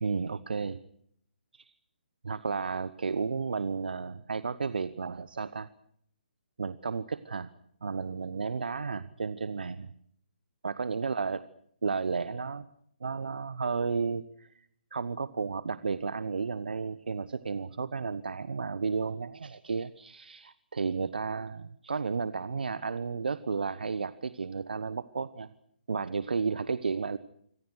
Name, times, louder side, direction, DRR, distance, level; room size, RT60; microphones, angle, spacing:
voice 1, 0.0-0.8 1.5-1.7 2.2-5.7 6.6-7.5 7.8-9.9 10.6-11.4 11.8-12.6 13.0-14.7 14.9-25.5 25.9-27.2, right 5 dB, 70° right, 16 dB, 1.1 m, -33 dB
26.5 x 25.0 x 6.4 m, 0.69 s
figure-of-eight pair, 135°, 5 cm